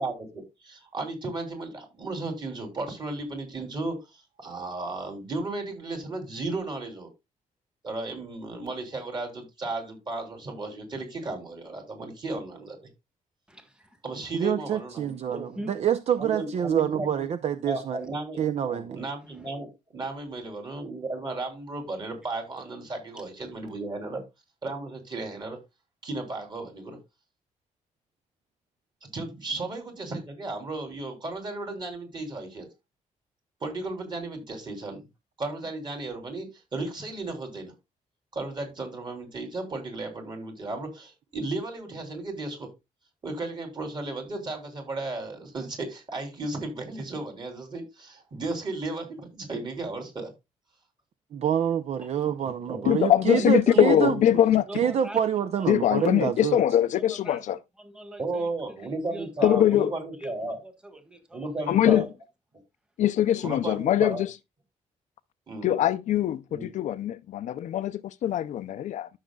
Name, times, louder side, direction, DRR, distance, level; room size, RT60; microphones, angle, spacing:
voice 1, 0.0-7.1 7.8-12.8 14.0-15.5 16.2-17.1 17.6-18.4 18.6-24.2 24.6-25.6 26.0-27.0 29.0-32.7 33.6-35.0 35.4-37.7 38.3-42.7 43.2-50.3 52.7-52.9 58.2-60.6 61.3-62.1 63.4-64.2 65.5-65.7 66.5-66.6, right 2 dB, 35° right, 3.3 m, -34 dB
voice 2, 13.5-14.0 15.3-15.8 52.0-52.1 53.3-53.9 54.7-55.2 55.6-56.2 56.9-62.1 63.3-63.4, right 1 dB, 5° right, 1.6 m, -42 dB
voice 3, 14.3-15.4 15.7-18.0 18.4-19.0 51.3-54.2 54.7-56.6, right 9 dB, 55° right, 0.6 m, -26 dB
voice 4, 52.9-54.7 55.7-57.6 59.4-59.9 61.7-62.1 63.0-64.3 65.6-69.1, left 11 dB, 70° left, 0.5 m, -22 dB
13.0 x 6.4 x 2.3 m
cardioid pair, 130°, 13 cm